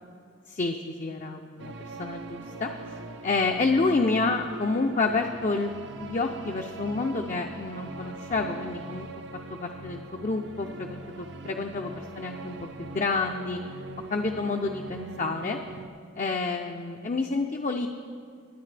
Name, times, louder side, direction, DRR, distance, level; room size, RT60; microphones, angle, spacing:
voice 1, 0.5-2.7 3.2-5.7 6.0-9.1 9.5-13.6 14.1-15.6 16.2-17.9, left 3 dB, 40° left, 3 dB, 0.5 m, -29 dB
sound 1, 1.6-15.9, right 3 dB, 60° right, 0.7 m, -42 dB
21.5 x 9.5 x 3.3 m, 2.2 s
head